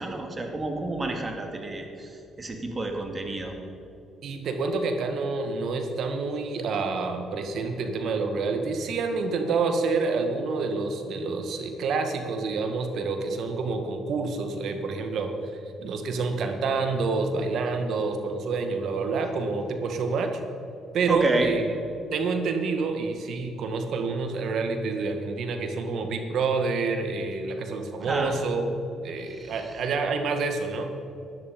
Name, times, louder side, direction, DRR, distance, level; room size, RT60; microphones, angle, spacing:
voice 1, 0.0-3.5 21.1-21.5 28.0-28.3 29.3-29.5, right 2 dB, 30° right, 3 dB, 2.6 m, -30 dB
voice 2, 4.2-15.3 15.8-20.4 20.9-21.7 22.1-28.6 29.0-30.9, right 4 dB, 65° right, 5 dB, 1.9 m, -28 dB
16.5 x 10.5 x 5.4 m, 2.8 s
supercardioid pair, 60°, 0 cm